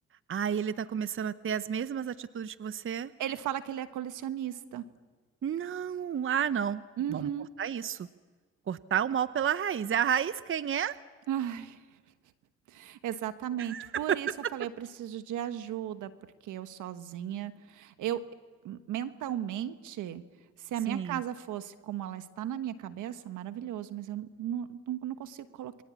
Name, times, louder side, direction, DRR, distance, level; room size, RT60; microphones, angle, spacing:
voice 1, 0.3-3.1 5.4-6.8 7.1-7.3 7.6-8.1 8.7-11.0 13.6-14.2 20.9-21.2, right 8 dB, 45° right, 14 dB, 0.8 m, -31 dB
voice 2, 3.2-4.8 7.0-7.5 11.3-12.0 12.7-16.1 16.4-18.2 18.6-20.2 20.6-25.8, right 11 dB, 80° right, 10 dB, 1.4 m, -36 dB
28.5 x 22.5 x 8.5 m, 1.4 s
supercardioid pair, 65°, 30 cm